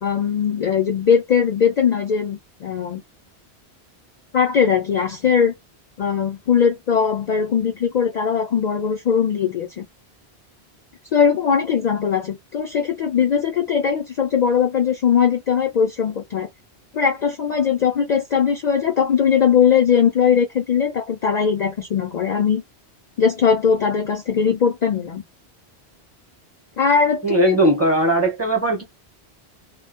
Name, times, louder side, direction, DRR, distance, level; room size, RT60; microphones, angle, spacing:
voice 1, 0.0-3.0 4.3-5.5 6.0-9.9 11.1-16.5 16.9-22.6 23.2-25.2 26.8-27.7, left 7 dB, 55° left, 0.5 m, -20 dB
voice 2, 27.2-28.8, right 2 dB, 15° right, 0.7 m, -19 dB
2.1 x 2.0 x 3.4 m
omnidirectional pair, 1.1 m